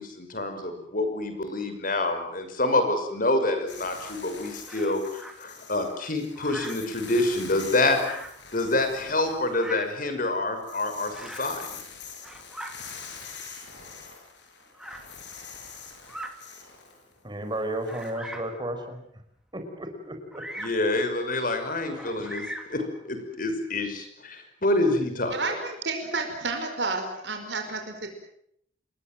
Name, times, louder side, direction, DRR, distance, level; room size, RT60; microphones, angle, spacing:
voice 1, 0.0-8.2 8.5-11.7 20.6-22.4 22.7-25.4, left 2 dB, 50° left, 7 dB, 6.0 m, -27 dB
sound 1, 3.7-10.1 10.4-18.1, left 5 dB, 65° left, 7.1 m, -44 dB
Bird vocalization bird call bird song, 4.7-5.4 6.3-6.9 7.9-8.4 9.5-10.0 11.1-11.5 12.1-12.7 13.6-13.7 14.7-15.1 16.0-16.4 17.0-17.1 17.8-18.6 20.3-20.8 21.9-22.8, right 1 dB, 5° right, 2.8 m, -40 dB
voice 2, 17.2-19.0 19.5-20.4, right 1 dB, 25° right, 5 dB, 5.3 m, -33 dB
voice 3, 25.3-28.1, right 3 dB, 65° right, 5 dB, 5.0 m, -31 dB
28.5 x 22.0 x 7.7 m, 0.70 s
head